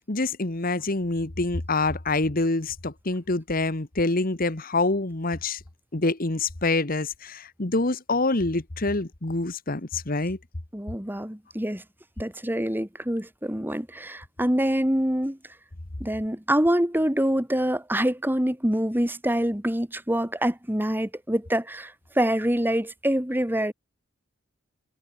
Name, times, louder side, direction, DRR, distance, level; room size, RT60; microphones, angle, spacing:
voice 1, 0.1-5.6 5.9-10.4, left 2 dB, 40° left, 1.5 m, -26 dB
voice 2, 10.7-11.8 12.2-15.4 16.0-23.7, right 1 dB, 10° right, 2.2 m, -25 dB
head